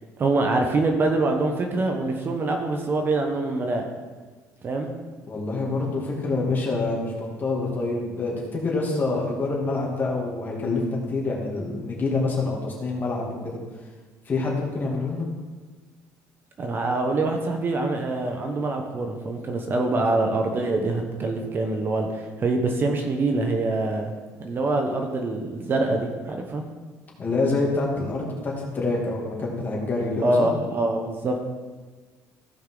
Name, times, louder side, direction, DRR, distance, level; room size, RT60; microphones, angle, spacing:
voice 1, 0.2-3.9 4.6-4.9 16.6-24.1 24.4-26.6 30.2-31.4, right 2 dB, 35° right, 3 dB, 1.0 m, -25 dB
voice 2, 5.3-7.1 7.4-10.8 11.1-13.6 14.3-15.3 27.2-30.5, left 3 dB, 30° left, -2 dB, 2.4 m, -26 dB
15.5 x 5.5 x 3.9 m, 1.3 s
cardioid pair, 130°, 6 cm